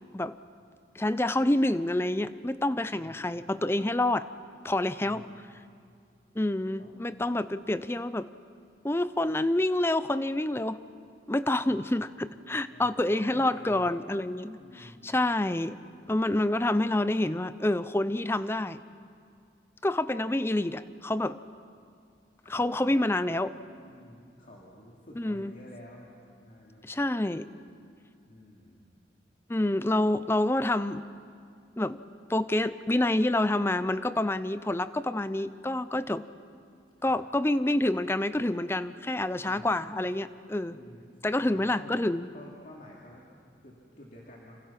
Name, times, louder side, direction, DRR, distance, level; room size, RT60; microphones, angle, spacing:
voice 1, 0.9-4.3 4.6-5.2 6.4-8.3 8.8-10.8 11.3-15.8 16.1-18.8 19.8-21.4 22.5-23.6 25.2-25.5 26.8-27.5 29.5-31.0 31.8-32.0 32.3-36.2 37.0-40.8 41.2-42.3, left 1 dB, 15° left, 14 dB, 0.5 m, -27 dB
voice 2, 2.8-3.3 4.9-5.4 6.8-6.9 11.5-12.0 12.7-13.9 14.5-15.1 22.4-23.0 23.8-26.9 28.3-28.8 37.1-37.2 39.3-39.7 40.7-41.1 41.4-42.0 42.3-43.3 43.6-44.6, left 1 dB, 50° left, -3 dB, 2.7 m, -50 dB
28.5 x 26.5 x 5.9 m, 2.4 s
head